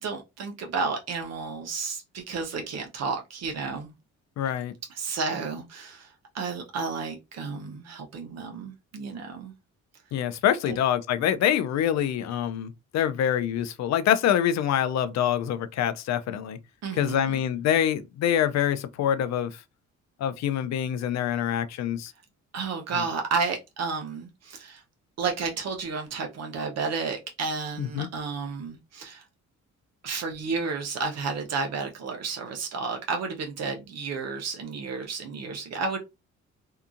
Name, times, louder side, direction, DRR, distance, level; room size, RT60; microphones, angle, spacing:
voice 1, 0.0-3.9 4.9-6.1 6.3-9.5 10.7-10.8 16.8-17.3 22.5-24.8 25.2-29.2 30.0-36.0, right 4 dB, 60° right, 0.7 m, -32 dB
voice 2, 4.4-4.7 10.1-16.6 16.9-19.5 20.2-22.1 22.9-23.0 27.8-28.1, left 10 dB, 65° left, 0.4 m, -25 dB
2.7 x 2.3 x 2.5 m
cardioid pair, 90°, 30 cm